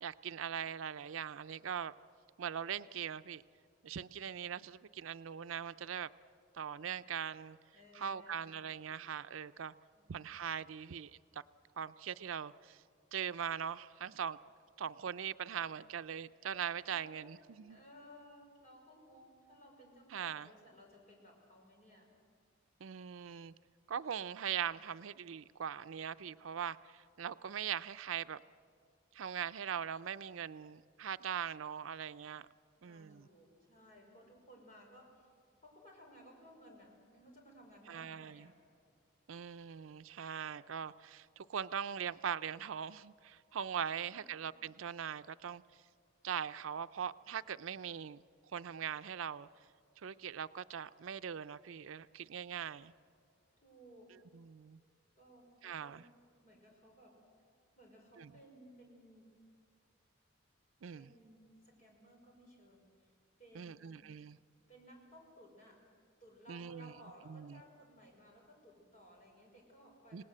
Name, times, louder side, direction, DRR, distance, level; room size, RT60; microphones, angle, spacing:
voice 1, 0.0-1.9 2.4-3.4 3.8-6.1 6.5-7.6 7.9-9.7 10.1-11.2 11.8-12.8 13.1-14.4 14.8-17.8 20.1-20.5 22.8-23.5 23.9-28.4 29.1-32.5 32.8-33.3 37.9-38.5 39.3-45.6 46.2-48.2 48.5-49.5 50.0-52.9 54.3-54.8 55.6-56.0 58.2-58.3 60.8-61.1 63.5-64.4 66.5-66.9 67.3-67.6 70.1-70.2, right 8 dB, 85° right, 13 dB, 0.5 m, -41 dB
voice 2, 7.7-9.0 10.0-10.3 16.8-22.1 32.8-35.3 35.6-38.6 43.8-44.5 53.6-54.2 55.2-56.1 56.4-57.2 57.8-59.3 60.9-63.1 63.4-64.0 64.7-65.8 66.2-70.2, equal, 40° left, 0 dB, 5.3 m, -59 dB
26.5 x 18.5 x 7.8 m, 2.1 s
head